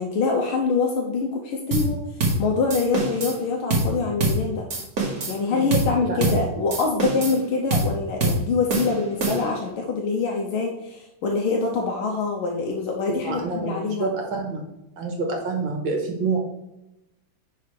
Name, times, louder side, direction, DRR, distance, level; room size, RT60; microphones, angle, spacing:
voice 1, 0.0-2.0 2.4-4.7 5.3-14.1, left 4 dB, 80° left, 0 dB, 1.7 m, -25 dB
sound 1, 1.7-1.9 2.2-2.4 2.7-3.4 3.7-3.9 4.2-4.4 4.7-5.4 5.7-5.9 6.2-6.4 6.7-7.4 7.7-7.9 8.2-8.4 8.7-9.6, right 2 dB, 45° right, 1.9 m, -24 dB
voice 2, 5.5-6.4 13.1-14.7 15.0-16.4, right 3 dB, 65° right, 1 dB, 2.1 m, -28 dB
10.0 x 4.8 x 3.3 m, 0.90 s
omnidirectional pair, 2.3 m